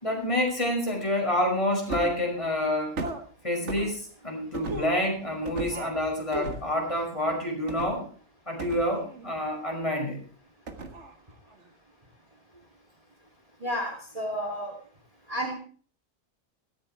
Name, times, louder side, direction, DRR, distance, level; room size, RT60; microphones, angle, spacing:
voice 1, 0.0-3.0 3.4-8.1 8.5-10.2, left 1 dB, 20° left, 0 dB, 5.8 m, -28 dB
sound 1, 1.9-2.3 3.0-3.2 3.7-3.9 4.5-5.0 5.5-6.0 6.3-6.7 7.7-8.0 8.6-9.4 10.7-11.1 11.5-11.6, right 2 dB, 50° right, 1.9 m, -35 dB
voice 2, 13.6-14.7 15.3-15.5, equal, 25° right, 1 dB, 3.0 m, -31 dB
17.0 x 14.5 x 3.4 m, 0.43 s
omnidirectional pair, 1.5 m